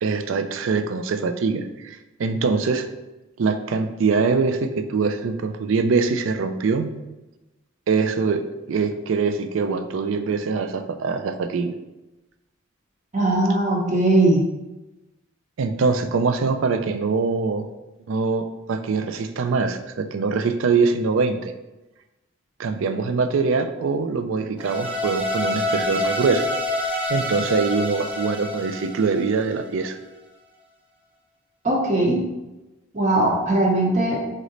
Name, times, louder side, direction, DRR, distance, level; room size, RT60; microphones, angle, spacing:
voice 1, 0.0-2.9 3.4-6.9 7.9-11.7 15.6-17.7 18.1-21.5 22.6-26.5 26.8-29.9, right 4 dB, 70° right, 8 dB, 0.4 m, -23 dB
voice 2, 13.1-14.4 31.6-32.2 32.9-34.2, right 2 dB, 35° right, -2 dB, 0.8 m, -19 dB
sound 1, 24.6-29.8, left 1 dB, 5° right, 0.6 m, -27 dB
3.9 x 3.1 x 3.9 m, 1.0 s
head